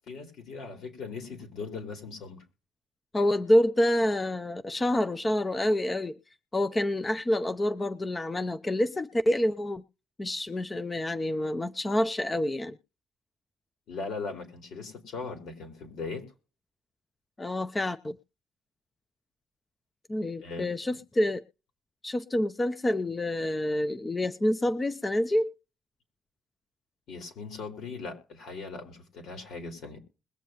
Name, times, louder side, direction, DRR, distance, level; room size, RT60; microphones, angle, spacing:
voice 1, 0.1-2.4 13.9-16.2 20.4-20.7 27.1-30.0, left 4 dB, 75° left, 4.2 m, -39 dB
voice 2, 3.1-6.1 6.5-9.8 10.2-12.8 17.4-18.2 20.1-21.4 22.0-25.5, left 1 dB, 20° left, 0.8 m, -27 dB
21.5 x 7.5 x 3.0 m
cardioid pair, 90°, 0 cm